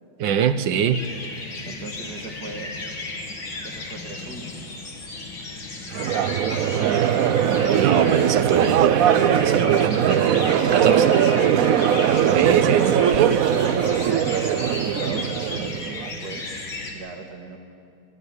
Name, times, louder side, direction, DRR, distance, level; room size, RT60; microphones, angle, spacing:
voice 1, 0.2-1.1 7.8-9.1 9.4-11.0 12.3-13.6, right 8 dB, 65° right, 11 dB, 1.4 m, -24 dB
sound 1, 0.9-16.9, left 2 dB, 65° left, 3.3 m, -35 dB
voice 2, 1.4-3.1 3.6-4.5 6.3-7.1 11.0-17.6, right 3 dB, 50° right, 3 dB, 2.4 m, -39 dB
Crowd, 5.9-16.1, right 9 dB, 90° right, 0.7 m, -20 dB
26.0 x 13.0 x 9.8 m, 2.5 s
omnidirectional pair, 2.4 m